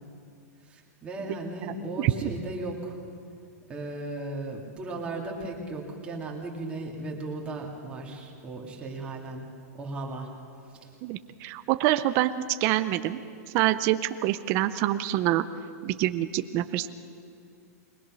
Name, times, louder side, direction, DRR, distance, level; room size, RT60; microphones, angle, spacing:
voice 1, 0.7-3.0 3.7-9.4 9.8-10.3 10.8-10.9, right 2 dB, 10° right, -1 dB, 2.4 m, -36 dB
voice 2, 1.6-2.3 11.0-13.2 13.5-15.4 15.8-16.9, right 14 dB, 30° right, 11 dB, 0.5 m, -26 dB
22.0 x 20.0 x 6.2 m, 2.5 s
supercardioid pair, 170°, 9 cm